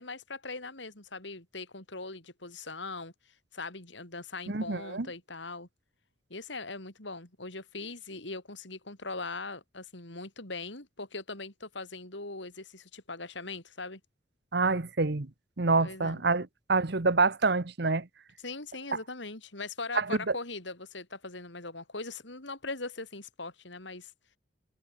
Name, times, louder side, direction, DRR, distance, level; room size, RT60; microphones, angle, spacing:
voice 1, 0.0-3.1 3.5-5.7 6.3-14.0 15.8-16.2 18.4-24.1, left 3 dB, 70° left, 4.6 m, -40 dB
voice 2, 4.5-5.1 14.5-15.3 15.6-18.1 19.9-20.3, right 3 dB, 60° right, 1.2 m, -27 dB
head